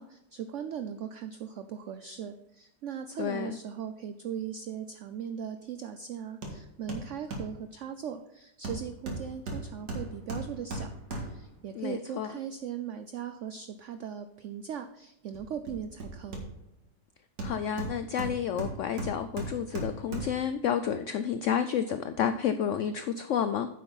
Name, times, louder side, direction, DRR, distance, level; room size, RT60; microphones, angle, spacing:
voice 1, 0.0-11.0 11.2-16.4, right 8 dB, 85° right, 9 dB, 0.6 m, -39 dB
voice 2, 3.2-3.6 11.8-12.3 17.4-23.7, left 8 dB, 85° left, 10 dB, 0.6 m, -30 dB
Hammer, 6.4-6.6 6.9-7.6 8.6-11.5 15.3-16.8 17.4-20.5 20.9-21.0, right 2 dB, 65° right, 2.3 m, -37 dB
9.5 x 7.6 x 4.0 m, 0.84 s
omnidirectional pair, 1.8 m